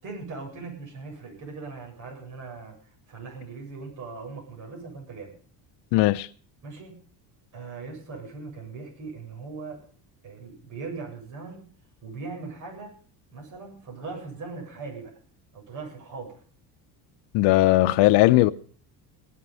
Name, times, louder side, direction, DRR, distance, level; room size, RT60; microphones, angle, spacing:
voice 1, 0.0-2.8 3.1-5.4 6.6-7.0 7.5-9.8 10.2-11.7 12.0-12.9 13.3-15.2 15.5-16.4, right 4 dB, 45° right, 7.9 m, -39 dB
voice 2, 5.9-6.3 17.3-18.5, left 18 dB, 75° left, 0.8 m, -18 dB
18.0 x 11.5 x 5.6 m
cardioid pair, 165°, 42 cm